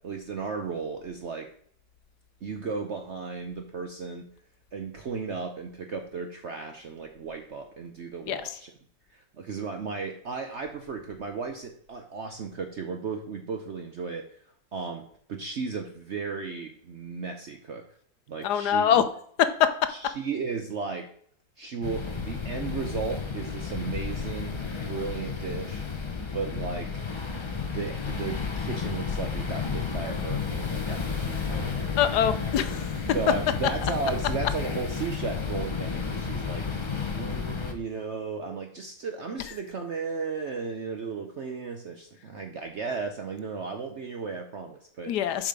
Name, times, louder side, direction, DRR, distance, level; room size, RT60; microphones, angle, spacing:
voice 1, 0.0-1.5 2.4-4.3 4.7-8.7 9.1-14.3 14.7-15.0 15.3-17.8 18.3-19.0 19.9-21.1 21.6-25.8 26.3-27.0 27.7-31.8 33.1-36.8 37.1-45.1, right 5 dB, 60° right, 5 dB, 0.7 m, -35 dB
voice 2, 18.4-19.0 19.4-19.7 32.0-32.9 45.1-45.5, left 9 dB, 70° left, 11 dB, 1.2 m, -23 dB
sound 1, 21.8-37.7, left 5 dB, 45° left, 0.3 m, -32 dB
7.4 x 5.0 x 5.1 m, 0.62 s
omnidirectional pair, 1.9 m